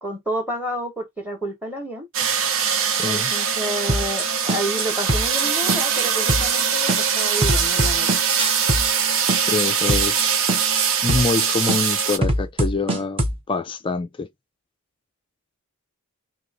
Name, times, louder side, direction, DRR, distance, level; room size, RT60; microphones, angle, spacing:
voice 1, 0.0-2.1 3.1-8.1, equal, 10° right, 1.4 m, -30 dB
sound 1, 2.1-12.2, right 7 dB, 60° right, 0.6 m, -22 dB
voice 2, 3.0-3.3 9.4-10.4 11.0-13.2 13.5-14.3, left 4 dB, 25° left, 0.4 m, -25 dB
sound 2, 3.9-4.2 4.5-4.8 5.1-5.4 5.7-6.0 6.3-6.6 6.9-9.0 9.3-9.6 9.9-10.2 10.5-10.8 11.1-11.4 11.7-13.4, right 1 dB, 25° right, 0.8 m, -23 dB
3.0 x 2.9 x 3.8 m
head